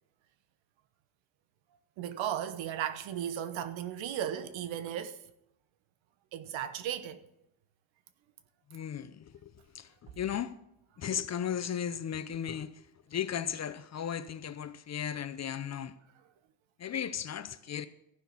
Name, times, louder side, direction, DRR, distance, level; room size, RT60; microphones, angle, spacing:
voice 1, 2.0-5.2 6.3-7.2, right 10 dB, 70° right, 1.1 m, -35 dB
voice 2, 8.7-10.5 11.0-12.8 13.1-15.9 16.8-17.9, left 9 dB, 35° left, 0.7 m, -36 dB
14.5 x 5.9 x 7.0 m
cardioid pair, 100°, 49 cm